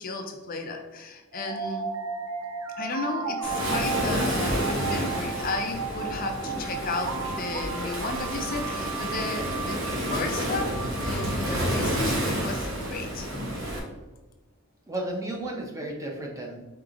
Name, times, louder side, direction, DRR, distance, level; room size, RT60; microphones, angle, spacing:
voice 1, 0.0-1.9 2.8-9.8 10.1-10.8 11.0-13.3, left 3 dB, 40° left, 4 dB, 0.4 m, -34 dB
sound 1, 1.3-12.3, right 5 dB, 85° right, 0.4 m, -35 dB
Waves surf, 3.4-13.8, equal, 70° right, 1.0 m, -30 dB
voice 2, 14.9-16.7, right 1 dB, 15° right, 0 dB, 0.6 m, -33 dB
4.7 x 3.7 x 2.5 m, 1.1 s
head